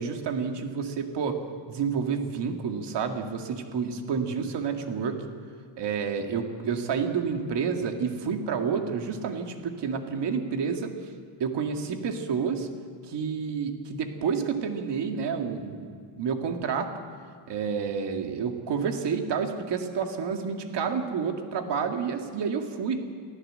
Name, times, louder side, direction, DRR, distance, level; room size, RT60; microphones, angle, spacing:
voice 1, 0.0-1.4 1.7-5.2 5.8-10.9 11.4-12.7 13.0-16.9 17.5-23.1, right 6 dB, 60° right, 5 dB, 2.2 m, -29 dB
23.5 x 14.5 x 7.7 m, 2.2 s
cardioid pair, 145°, 47 cm